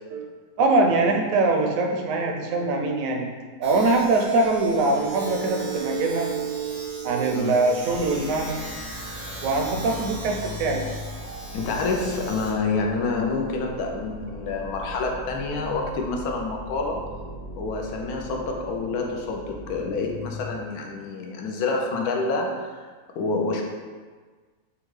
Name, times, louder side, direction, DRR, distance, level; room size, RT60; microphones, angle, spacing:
voice 1, 0.6-3.3 3.6-8.6 9.4-10.9, right 3 dB, 70° right, 2 dB, 0.9 m, -23 dB
Domestic sounds home sounds, 3.6-14.0, right 1 dB, 55° right, 0.6 m, -41 dB
sound 1, 7.9-20.6, left 1 dB, 55° left, 0.4 m, -39 dB
voice 2, 11.5-17.0 17.6-22.9 23.1-23.6, left 3 dB, 80° left, 1 dB, 1.1 m, -27 dB
5.2 x 2.4 x 3.1 m, 1.5 s
omnidirectional pair, 1.7 m